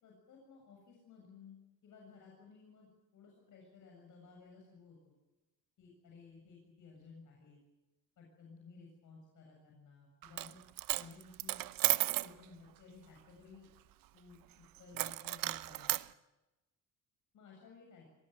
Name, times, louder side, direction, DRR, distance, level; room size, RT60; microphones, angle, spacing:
voice 1, 0.0-5.1 5.8-7.6 8.2-10.6 10.9-11.6 12.0-13.7 14.1-14.4 14.8-16.0 17.3-18.1, left 4 dB, 55° left, 0 dB, 7.4 m, -57 dB
Coin (dropping), 10.2-10.5 10.8-12.3 14.9-16.0, right 15 dB, 65° right, 0.9 m, -33 dB
24.5 x 19.5 x 9.4 m, 1.0 s
cardioid pair, 150°, 37 cm